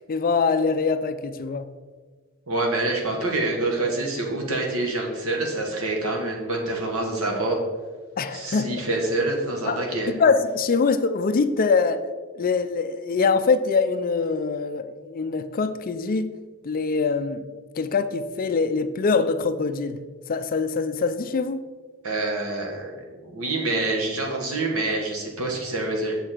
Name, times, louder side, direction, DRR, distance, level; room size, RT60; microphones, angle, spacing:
voice 1, 0.1-1.7 8.2-8.9 9.7-12.0 12.3-16.3 16.6-17.4 17.8-20.0 20.3-21.6, left 4 dB, 40° left, 11 dB, 0.4 m, -23 dB
voice 2, 2.5-7.6 8.3-10.1 22.0-26.2, right 2 dB, 70° right, 1 dB, 1.7 m, -26 dB
7.2 x 6.9 x 4.4 m, 1.5 s
head